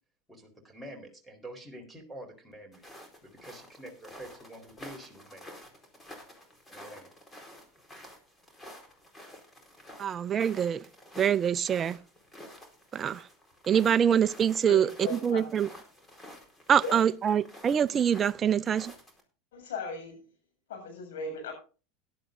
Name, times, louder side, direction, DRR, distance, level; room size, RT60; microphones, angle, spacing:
voice 1, 0.3-5.6 6.7-7.1, right 1 dB, ahead, 4.1 m, -47 dB
sound 1, 2.7-19.2, left 1 dB, 15° left, 4.3 m, -50 dB
voice 2, 10.0-10.8 11.2-12.0 12.9-13.2 13.7-15.7 16.7-18.9, right 8 dB, 35° right, 0.6 m, -25 dB
voice 3, 14.7-15.7 16.8-17.0 19.5-20.2 20.7-21.5, left 3 dB, 80° left, 7.4 m, -37 dB
17.5 x 11.5 x 2.6 m
hypercardioid pair, 95°, 0 cm